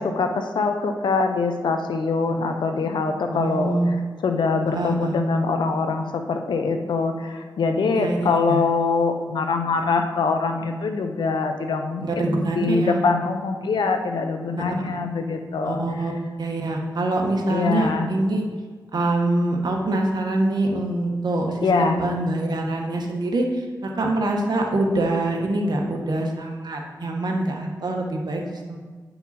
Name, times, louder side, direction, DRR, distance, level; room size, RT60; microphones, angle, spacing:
voice 1, 0.0-4.0 4.2-15.8 17.5-18.1 21.6-22.0, left 4 dB, 85° left, 6 dB, 0.8 m, -23 dB
voice 2, 3.3-3.9 4.7-5.2 7.9-8.6 12.0-13.0 15.6-16.1 16.4-18.4 18.9-28.8, right 2 dB, 65° right, 1 dB, 1.5 m, -24 dB
9.7 x 5.7 x 4.3 m, 1.5 s
cardioid pair, 55°, 8 cm